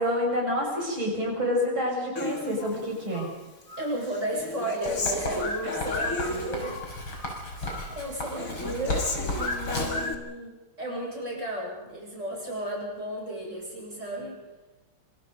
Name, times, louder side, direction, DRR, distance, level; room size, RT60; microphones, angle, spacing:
voice 1, 0.0-3.3, equal, 70° right, 0 dB, 7.6 m, -28 dB
Human voice, 2.2-3.3 3.7-6.9 7.2-7.9 8.2-10.1, left 2 dB, 40° left, 2.5 m, -33 dB
voice 2, 3.8-6.7 7.9-14.4, right 1 dB, 35° right, -2 dB, 8.0 m, -34 dB
Writing, 4.9-10.1, left 1 dB, 75° left, 6.4 m, -34 dB
26.0 x 25.5 x 5.3 m, 1.1 s
omnidirectional pair, 2.3 m